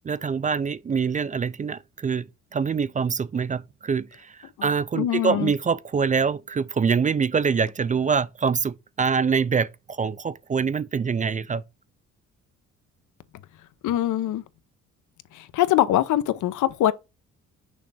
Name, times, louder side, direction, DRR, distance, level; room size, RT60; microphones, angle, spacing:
voice 1, 0.0-2.3 2.5-11.6, right 6 dB, 25° right, 0.4 m, -25 dB
voice 2, 4.6-5.5 13.8-14.4 15.3-16.9, left 12 dB, 80° left, 0.8 m, -23 dB
6.4 x 3.4 x 5.5 m
cardioid pair, 90°, 30 cm